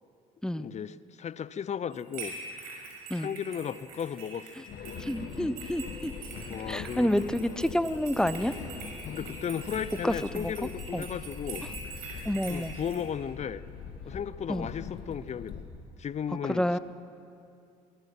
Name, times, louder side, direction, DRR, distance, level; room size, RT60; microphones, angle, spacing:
voice 1, 0.5-2.3 3.1-4.7 6.5-7.1 9.0-11.6 12.5-13.6 14.1-15.6 16.0-16.6, left 8 dB, 35° left, 17 dB, 0.8 m, -35 dB
sound 1, 1.9-13.0, right 4 dB, 70° right, 5.8 m, -44 dB
sound 2, 4.7-15.7, left 6 dB, 60° left, 2.2 m, -42 dB
voice 2, 5.0-6.1 6.7-8.5 10.0-10.5 10.9-11.1 12.2-12.7 14.5-14.7 16.5-16.8, left 1 dB, 5° left, 14 dB, 0.9 m, -28 dB
23.0 x 20.5 x 5.9 m, 2.6 s
figure-of-eight pair, 50°, 19 cm